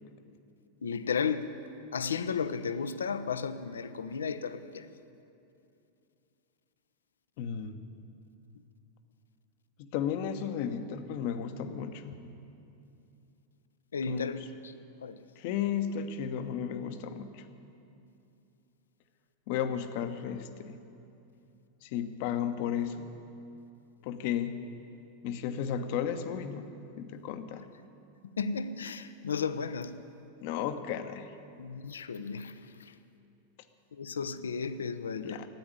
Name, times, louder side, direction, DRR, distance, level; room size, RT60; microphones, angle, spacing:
voice 1, 0.8-1.5 1.9-4.9 13.9-14.7 15.0-15.2 28.4-30.0 31.6-33.0 33.9-35.4, left 5 dB, 70° left, 13 dB, 0.6 m, -34 dB
voice 2, 7.4-7.8 9.8-12.2 14.1-14.3 15.4-17.5 19.5-20.8 21.8-23.1 24.0-24.6 25.2-26.7 27.0-27.7 30.4-31.3 35.2-35.5, left 8 dB, 45° left, 9 dB, 0.9 m, -34 dB
13.0 x 9.7 x 9.6 m, 2.7 s
figure-of-eight pair, 90°, 0 cm